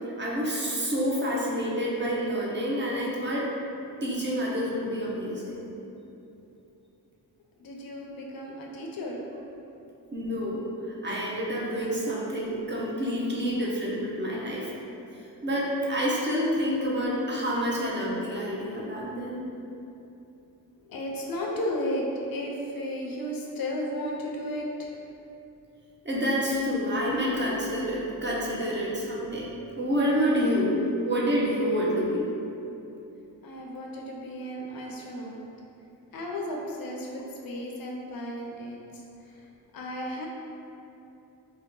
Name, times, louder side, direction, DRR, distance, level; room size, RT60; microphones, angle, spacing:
voice 1, 0.2-3.5 4.0-5.6 10.1-14.7 15.4-19.4 26.0-29.4 29.8-30.8 31.0-32.3, equal, 30° right, -5 dB, 0.5 m, -28 dB
voice 2, 7.6-9.2 20.9-25.0 33.4-35.4 36.1-38.8 39.3-39.4 39.7-40.3, left 1 dB, 70° left, -1 dB, 0.5 m, -34 dB
2.7 x 2.1 x 3.6 m, 2.8 s
wide cardioid pair, 115°, 37 cm